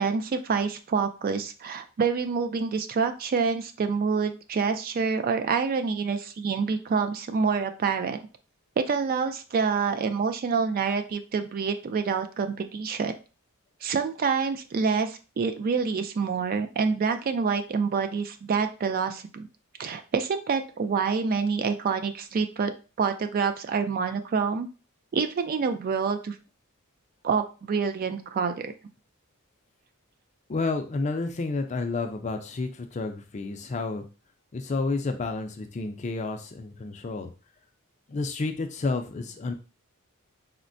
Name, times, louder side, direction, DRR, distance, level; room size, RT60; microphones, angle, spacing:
voice 1, 0.0-8.2 8.8-13.2 13.8-19.5 19.8-24.7 25.1-26.4 27.2-28.7, right 5 dB, 45° right, 8 dB, 0.3 m, -27 dB
voice 2, 30.5-34.0 34.5-37.3 38.1-39.5, left 3 dB, 35° left, 5 dB, 0.4 m, -30 dB
4.3 x 2.0 x 2.5 m, 0.33 s
head